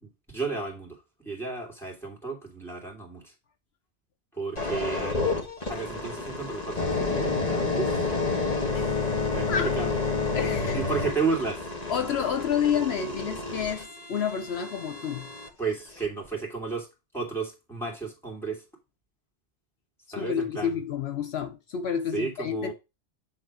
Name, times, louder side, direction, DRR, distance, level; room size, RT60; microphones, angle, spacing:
voice 1, 0.0-3.3 4.3-5.4 5.7-8.1 9.3-9.9 10.6-11.7 15.6-16.9 17.1-18.6 20.1-20.8 22.1-22.7, right 4 dB, ahead, 2.9 m, -33 dB
sound 1, 4.6-15.5 16.0-16.3, left 3 dB, 40° left, 1.7 m, -30 dB
voice 2, 8.7-9.7 10.3-10.8 11.9-15.3 20.2-22.7, left 8 dB, 75° left, 1.0 m, -29 dB
8.9 x 3.8 x 4.8 m
omnidirectional pair, 1.1 m